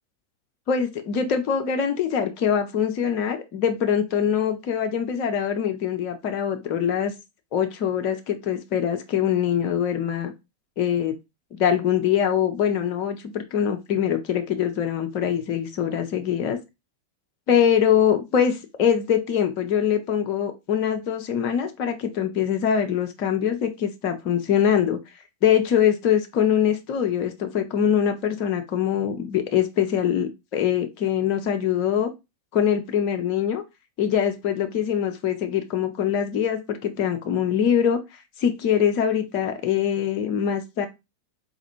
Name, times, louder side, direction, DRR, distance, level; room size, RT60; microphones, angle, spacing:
voice 1, 0.7-7.1 7.5-10.3 10.8-11.1 11.6-16.6 17.5-25.0 25.4-32.1 32.5-33.6 34.0-38.0 38.4-40.9, left 8 dB, 40° left, 5 dB, 0.5 m, -23 dB
4.1 x 2.4 x 2.8 m, 0.24 s
figure-of-eight pair, 90°, 0 cm